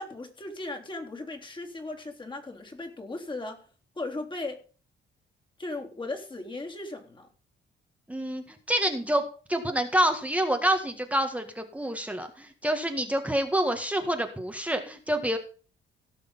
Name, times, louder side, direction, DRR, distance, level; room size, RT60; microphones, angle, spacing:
voice 1, 0.0-3.6 4.0-4.6 5.6-7.3, left 2 dB, 25° left, 3.5 m, -37 dB
voice 2, 8.1-15.4, right 1 dB, 5° right, 1.7 m, -27 dB
17.0 x 6.5 x 5.6 m
cardioid pair, 90°, 20 cm